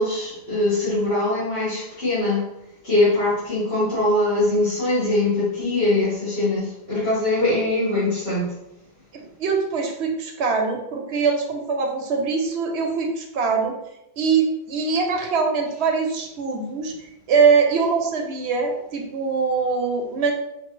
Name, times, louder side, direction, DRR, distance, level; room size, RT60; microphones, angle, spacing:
voice 1, 0.0-2.5 2.8-8.5, left 2 dB, 65° left, -13 dB, 1.9 m, -22 dB
voice 2, 9.1-13.8 14.2-16.9 17.3-20.3, right 5 dB, 80° right, 2 dB, 1.0 m, -22 dB
5.2 x 2.7 x 3.1 m, 0.85 s
omnidirectional pair, 1.1 m